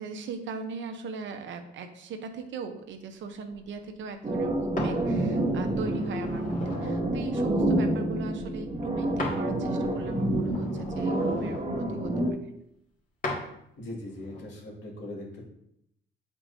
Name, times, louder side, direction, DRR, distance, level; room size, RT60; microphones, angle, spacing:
voice 1, 0.0-12.1, right 4 dB, 70° right, 6 dB, 0.9 m, -39 dB
sound 1, 4.2-12.3, right 1 dB, 25° right, 1.2 m, -28 dB
sound 2, 4.8-5.0 5.6-7.0 9.2-9.4 9.8-11.7 13.2-13.4 14.2-14.4, left 2 dB, 40° left, 2.2 m, -36 dB
voice 2, 13.8-15.4, left 1 dB, 65° left, -3 dB, 2.3 m, -40 dB
8.8 x 4.5 x 2.7 m, 0.77 s
cardioid pair, 90°, 20 cm